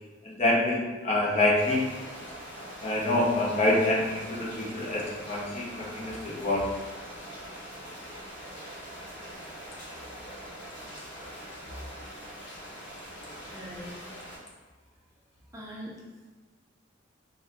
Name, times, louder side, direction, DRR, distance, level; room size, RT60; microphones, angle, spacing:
voice 1, 0.2-1.8 2.8-6.7, left 1 dB, 35° left, -4 dB, 0.6 m, -26 dB
sound 1, 1.5-14.4, equal, 55° left, 1.4 m, -43 dB
voice 2, 13.3-14.0 15.5-16.0, equal, 15° right, -5 dB, 0.5 m, -42 dB
4.0 x 3.6 x 2.3 m, 1.3 s
head